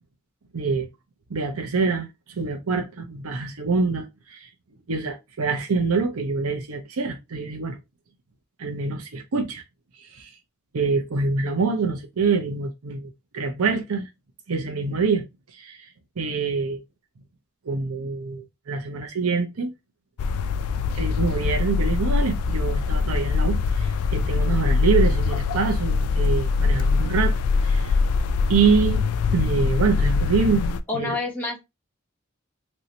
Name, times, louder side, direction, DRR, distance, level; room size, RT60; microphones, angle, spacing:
voice 1, 0.5-0.9 1.3-4.5 4.9-7.8 8.6-9.6 9.9-10.3 10.7-14.1 14.5-15.3 15.5-15.9 16.2-16.8 17.7-19.7 20.9-27.3 27.6-28.0 28.5-29.0 29.3-30.7 30.9-31.2, right 4 dB, 85° right, 0.7 m, -25 dB
sound 1, 20.2-30.8, left 4 dB, 85° left, 0.3 m, -23 dB
voice 2, 30.9-31.6, left 3 dB, 10° left, 1.0 m, -27 dB
3.1 x 2.7 x 2.8 m
head